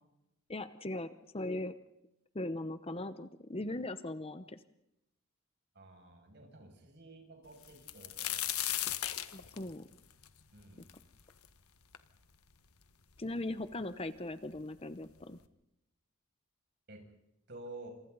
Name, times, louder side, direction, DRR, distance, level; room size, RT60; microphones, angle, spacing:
voice 1, 0.5-1.1 1.3-1.7 2.3-4.6 9.3-9.9 13.2-15.4, left 2 dB, 25° left, 12 dB, 0.9 m, -39 dB
voice 2, 5.8-8.9 10.5-10.8 16.9-17.0 17.5-17.9, right 2 dB, 50° right, 2 dB, 6.9 m, -51 dB
sound 1, 7.6-11.5 11.9-12.0 12.8-12.9 13.2-13.8 14.7-14.8 15.2-15.4, left 13 dB, 85° left, 1.5 m, -37 dB
29.0 x 27.5 x 4.1 m, 0.88 s
head